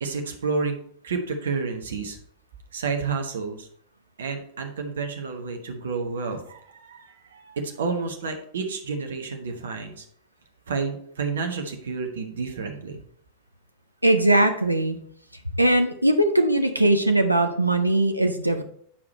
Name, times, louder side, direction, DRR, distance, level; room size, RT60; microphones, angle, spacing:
voice 1, 0.0-0.8 1.0-2.2 2.7-3.7 4.2-10.1 10.7-13.0, right 4 dB, 65° right, 4 dB, 1.0 m, -30 dB
voice 2, 14.0-15.0 15.6-18.6, right 1 dB, 85° right, 7 dB, 0.6 m, -20 dB
8.8 x 4.8 x 4.2 m, 0.64 s
figure-of-eight pair, 90°, 0 cm